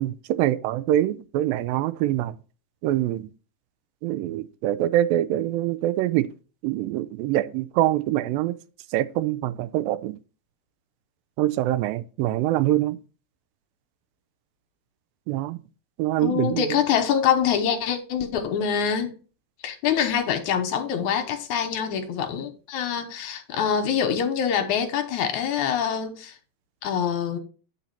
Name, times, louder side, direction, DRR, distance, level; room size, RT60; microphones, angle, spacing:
voice 1, 0.0-2.4 2.8-3.3 4.0-6.3 6.6-8.6 8.9-10.2 11.4-13.0 15.3-15.6 16.0-16.8, right 14 dB, 80° right, 2.3 m, -24 dB
voice 2, 16.2-19.2 19.6-26.4 26.8-27.4, left 8 dB, 70° left, 2.1 m, -25 dB
9.2 x 4.2 x 5.8 m
omnidirectional pair, 4.2 m